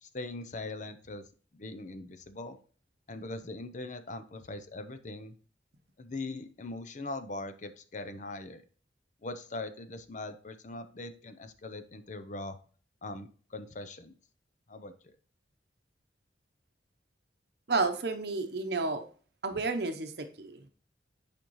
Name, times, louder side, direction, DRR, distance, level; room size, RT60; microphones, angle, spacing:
voice 1, 0.0-1.3 1.5-2.6 3.1-5.3 6.0-8.6 9.2-12.6 13.0-14.1 14.7-15.1, left 2 dB, 45° left, 10 dB, 0.6 m, -41 dB
voice 2, 17.7-19.0 19.4-20.7, right 3 dB, 60° right, 7 dB, 0.8 m, -31 dB
8.7 x 5.1 x 3.1 m, 0.41 s
head